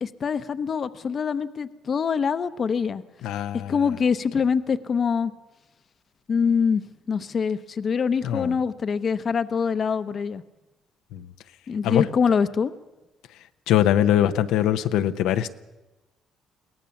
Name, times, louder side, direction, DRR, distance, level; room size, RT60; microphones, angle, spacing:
voice 1, 0.0-3.0 3.7-5.3 6.3-6.8 7.1-10.4 11.7-12.7, left 6 dB, 45° left, 13 dB, 0.8 m, -24 dB
voice 2, 3.2-3.7 8.2-8.5 11.1-11.2 11.8-12.0 13.7-15.5, left 11 dB, 90° left, 9 dB, 0.8 m, -22 dB
22.5 x 17.5 x 7.1 m, 1.1 s
cardioid pair, 105°, 0 cm